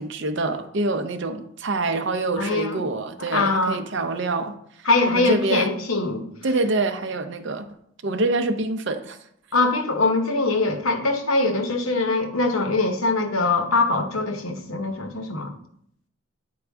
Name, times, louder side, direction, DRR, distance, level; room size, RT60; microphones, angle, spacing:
voice 1, 0.0-4.5 5.1-5.8 6.4-7.7 8.0-9.2, right 2 dB, 55° right, 8 dB, 0.6 m, -26 dB
voice 2, 2.4-2.8 3.3-3.8 4.9-6.2 9.5-15.5, left 3 dB, 70° left, 5 dB, 1.0 m, -22 dB
8.8 x 4.7 x 3.5 m, 0.69 s
head